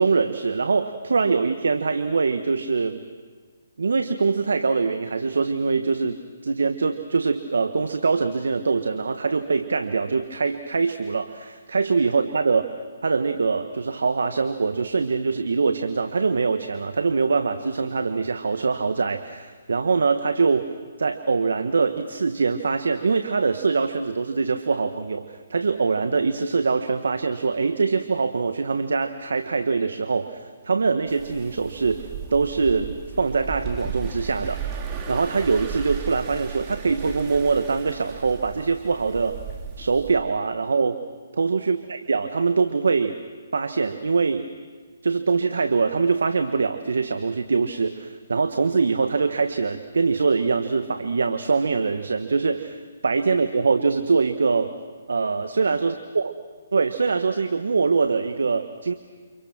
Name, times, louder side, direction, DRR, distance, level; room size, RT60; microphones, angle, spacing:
voice 1, 0.0-3.0 3.8-12.7 13.0-20.7 21.0-34.6 35.1-39.4 39.8-41.0 41.3-43.2 43.5-44.5 45.0-54.7 55.1-56.3 56.7-58.9, right 4 dB, 75° right, 8 dB, 1.4 m, -23 dB
sound 1, 31.1-40.1, right 6 dB, 25° right, 3.8 m, -35 dB
29.5 x 27.0 x 6.2 m, 1.4 s
figure-of-eight pair, 140°, 0 cm